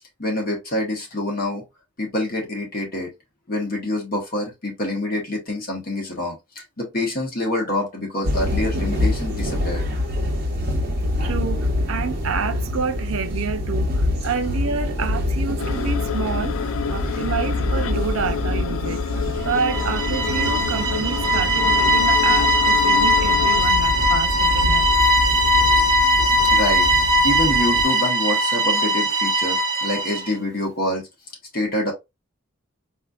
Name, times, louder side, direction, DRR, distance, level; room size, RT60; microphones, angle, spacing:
voice 1, 0.2-1.6 2.0-3.1 3.5-9.9 26.3-26.9 27.2-31.1 31.5-31.9, left 1 dB, 45° left, 1.3 m, -26 dB
sound 1, 8.2-27.8, left 1 dB, 45° right, 0.9 m, -26 dB
voice 2, 11.2-19.1 19.4-24.9, right 5 dB, 70° right, 0.5 m, -28 dB
sound 2, 15.6-23.6, left 7 dB, 75° left, 0.4 m, -30 dB
sound 3, 19.5-30.3, equal, 15° right, 0.6 m, -19 dB
4.2 x 2.7 x 2.3 m
head